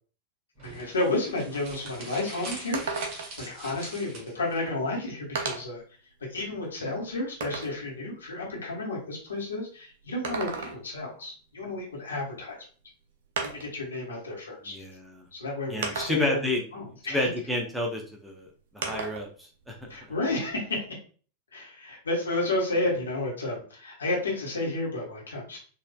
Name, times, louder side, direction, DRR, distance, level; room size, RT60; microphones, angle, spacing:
voice 1, 0.6-3.0 3.5-5.8 6.3-12.6 13.4-14.7 15.3-16.4 16.7-17.2 19.9-20.9 21.5-25.6, left 2 dB, 70° left, -2 dB, 1.2 m, -31 dB
sound 1, 0.6-4.6, right 2 dB, 35° right, 1.5 m, -42 dB
sound 2, 1.8-1.9 2.2-2.3 2.7-3.5 4.5-4.6 5.4-5.8 6.4-7.8 10.0-11.0 12.5-12.6 13.4-13.8 14.8-14.9 15.8-16.4 18.8-19.3 19.7-20.8, right 4 dB, 55° right, 0.6 m, -35 dB
voice 2, 14.6-15.3 15.7-16.6 17.1-18.5 18.7-19.9, left 1 dB, 5° right, 0 dB, 0.7 m, -30 dB
4.2 x 2.5 x 2.3 m, 0.41 s
figure-of-eight pair, 90°, 0 cm